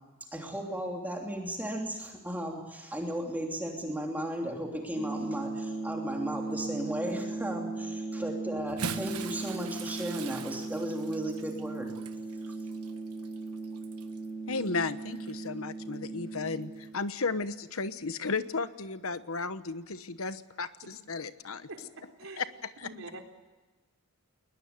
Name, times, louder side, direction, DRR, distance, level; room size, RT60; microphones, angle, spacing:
voice 1, 0.3-11.9, right 1 dB, 10° right, 1 dB, 2.9 m, -35 dB
sound 1, 5.0-16.9, right 3 dB, 50° left, 4.2 m, -37 dB
Bathtub (filling or washing) / Splash splatter, 8.6-14.3 15.2-15.3 16.8-16.9, right 5 dB, 85° right, 1.4 m, -42 dB
voice 2, 14.5-21.7 22.4-22.5 22.8-22.9, left 4 dB, 70° left, 13 dB, 1.1 m, -34 dB
voice 3, 22.8-23.2, right 2 dB, 65° right, 3 dB, 4.0 m, -43 dB
21.5 x 20.0 x 9.5 m, 1.2 s
head